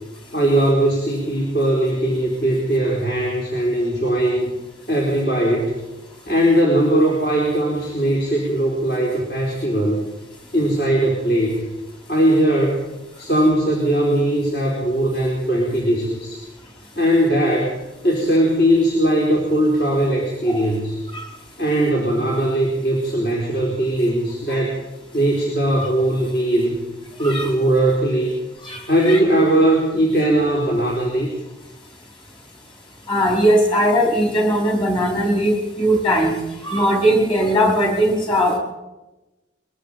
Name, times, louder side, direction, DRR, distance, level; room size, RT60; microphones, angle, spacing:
voice 1, 0.3-4.5 4.9-5.8 6.3-10.0 10.5-11.6 12.1-12.9 13.2-16.4 17.0-17.7 18.0-21.0 21.6-24.8 25.1-26.8 27.2-28.4 28.9-31.3, right 1 dB, 55° left, -3 dB, 4.3 m, -19 dB
voice 2, 28.6-29.2 33.1-36.4 36.6-38.6, equal, 25° left, 1 dB, 4.8 m, -19 dB
22.5 x 22.0 x 5.2 m, 1.0 s
head